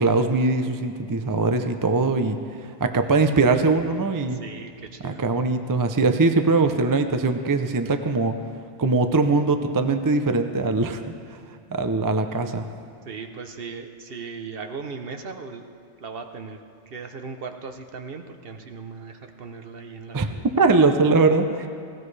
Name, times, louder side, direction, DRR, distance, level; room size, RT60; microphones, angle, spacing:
voice 1, 0.0-4.4 5.0-8.3 8.8-11.4 11.7-12.7 20.1-20.3 20.6-21.7, right 3 dB, 30° right, 7 dB, 0.4 m, -21 dB
voice 2, 4.4-5.3 13.1-15.6 16.0-16.6 16.9-20.5 21.5-21.7, right 5 dB, 50° right, 6 dB, 1.0 m, -38 dB
18.5 x 17.0 x 3.3 m, 2.3 s
omnidirectional pair, 1.3 m